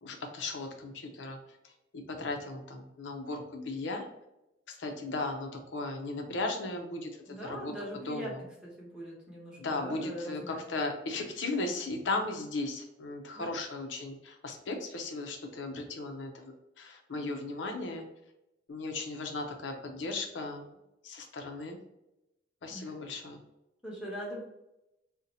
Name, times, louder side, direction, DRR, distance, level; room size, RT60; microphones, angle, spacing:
voice 1, 0.0-1.4 1.6-4.1 4.7-8.4 9.6-18.0 18.7-20.7 21.0-21.8 22.6-23.4, left 2 dB, 80° left, 4 dB, 0.5 m, -36 dB
voice 2, 7.2-8.3 8.6-10.6 13.3-13.5 22.7-23.0 23.8-24.4, equal, 5° right, -6 dB, 1.0 m, -41 dB
2.7 x 2.1 x 3.9 m, 0.90 s
head